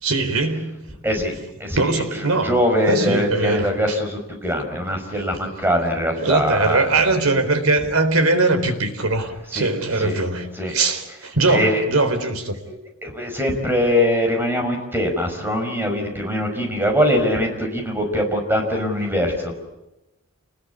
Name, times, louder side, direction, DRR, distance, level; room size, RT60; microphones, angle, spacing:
voice 1, 0.0-0.9 1.7-2.5 2.9-4.0 6.2-12.6, right 3 dB, 90° right, 8 dB, 4.2 m, -21 dB
voice 2, 1.6-1.9 2.4-6.8 9.5-9.7 10.0-10.2 10.6-10.7 11.5-11.8 12.7-12.8 13.0-19.5, equal, 10° right, 3 dB, 5.5 m, -22 dB
29.5 x 20.5 x 8.4 m, 0.99 s
head